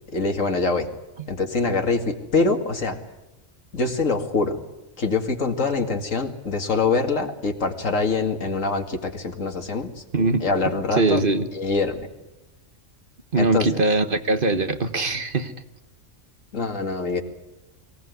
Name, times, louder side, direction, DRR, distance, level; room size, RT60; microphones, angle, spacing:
voice 1, 0.1-0.9 1.3-3.0 3.7-4.6 5.0-9.9 10.4-11.2 11.6-12.1 13.4-13.7 16.5-17.2, left 3 dB, 90° left, 5 dB, 2.6 m, -24 dB
voice 2, 10.1-10.4 11.0-11.5 13.3-15.5, right 3 dB, 45° right, 9 dB, 1.4 m, -21 dB
24.0 x 17.0 x 9.6 m, 1.0 s
omnidirectional pair, 1.3 m